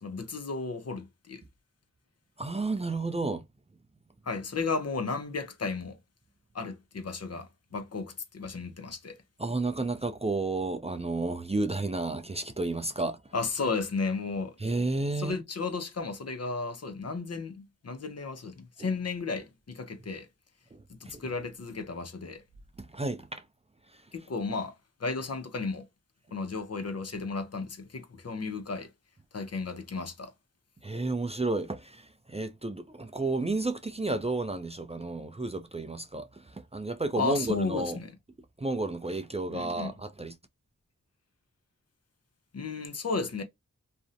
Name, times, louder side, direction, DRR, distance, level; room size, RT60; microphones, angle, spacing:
voice 1, 0.0-1.4 4.2-6.0 6.5-9.2 13.3-14.6 15.2-20.3 20.9-22.4 24.1-25.9 26.3-28.9 29.3-30.3 37.2-38.1 39.5-39.9 42.5-43.4, left 4 dB, 50° left, 0.6 m, -34 dB
voice 2, 2.4-3.4 9.4-13.2 14.6-15.4 18.8-18.9 22.8-23.4 30.8-38.0 38.6-40.3, right 2 dB, 20° right, 0.4 m, -31 dB
2.5 x 2.0 x 2.4 m
cardioid pair, 45°, 31 cm